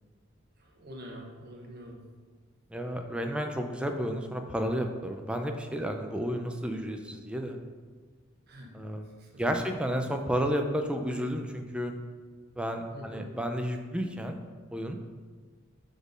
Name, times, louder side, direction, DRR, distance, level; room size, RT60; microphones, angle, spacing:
voice 1, 0.6-2.0 5.8-5.9 8.5-8.7 9.2-9.4 12.9-13.3, equal, 50° right, -1 dB, 1.1 m, -46 dB
voice 2, 2.7-7.6 8.7-9.1 9.4-11.9 12.6-14.4 14.7-15.0, equal, 5° right, 4 dB, 0.4 m, -31 dB
5.1 x 4.2 x 5.1 m, 1.5 s
head